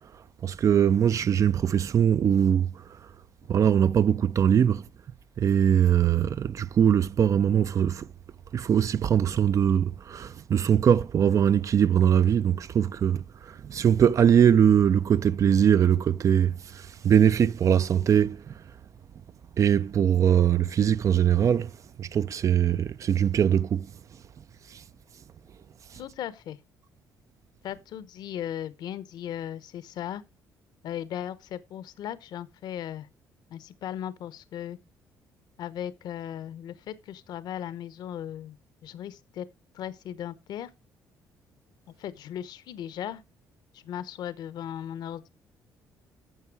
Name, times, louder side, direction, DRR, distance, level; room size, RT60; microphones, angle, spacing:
voice 1, 0.4-2.7 3.5-4.8 5.4-8.1 8.5-13.2 13.7-16.6 17.0-18.4 19.6-21.7 22.0-23.9, right 9 dB, 45° right, 0.5 m, -21 dB
voice 2, 25.9-26.6 27.6-30.2 30.8-33.1 33.5-34.8 35.6-38.6 38.8-39.5 39.7-40.7 42.0-43.2 43.7-45.3, left 10 dB, 70° left, 0.8 m, -37 dB
11.0 x 6.8 x 4.6 m
cardioid pair, 90°, 7 cm